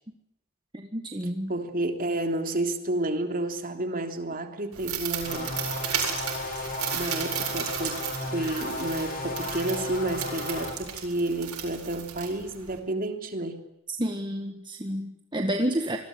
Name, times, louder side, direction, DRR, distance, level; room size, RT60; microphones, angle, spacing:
voice 1, 0.7-1.5 13.9-16.0, right 1 dB, 20° right, 4 dB, 1.8 m, -30 dB
voice 2, 1.5-5.5 6.9-8.0 8.3-13.6, right 2 dB, 40° right, 5 dB, 3.4 m, -30 dB
sound 1, 4.7-12.8, right 8 dB, 90° right, 7.8 m, -34 dB
sound 2, 5.2-10.7, left 2 dB, 40° left, 6.4 m, -34 dB
27.0 x 21.0 x 9.8 m, 0.85 s
head